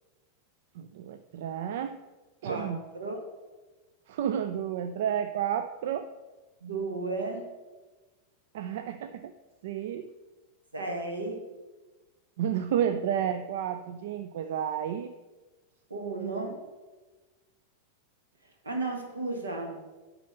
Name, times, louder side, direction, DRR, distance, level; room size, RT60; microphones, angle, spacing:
voice 1, 0.8-2.0 2.4-2.8 4.1-6.1 8.5-9.3 9.6-10.1 12.4-15.1, right 9 dB, 55° right, 10 dB, 0.3 m, -31 dB
voice 2, 2.4-3.2 6.6-7.5 10.7-11.4 15.9-16.6 18.6-19.8, right 3 dB, 75° right, 3 dB, 1.4 m, -34 dB
9.4 x 4.1 x 5.5 m, 1.2 s
figure-of-eight pair, 90°, 0 cm